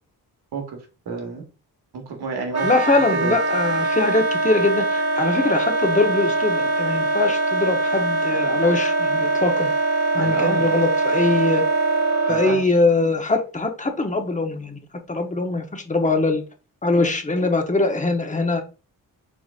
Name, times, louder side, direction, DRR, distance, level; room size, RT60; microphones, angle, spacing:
voice 1, 0.5-1.4 1.9-2.7 2.9-3.4 10.2-10.7 12.3-12.6, right 4 dB, 80° right, 4 dB, 1.5 m, -30 dB
Wind instrument woodwind instrument, 2.5-12.6, right 3 dB, 40° right, 1.4 m, -22 dB
voice 2, 2.6-9.7 10.1-11.6 12.3-14.8 15.1-16.4 16.8-18.6, left 3 dB, 20° left, 5 dB, 0.9 m, -22 dB
4.8 x 3.9 x 2.4 m, 0.33 s
cardioid pair, 70°, 38 cm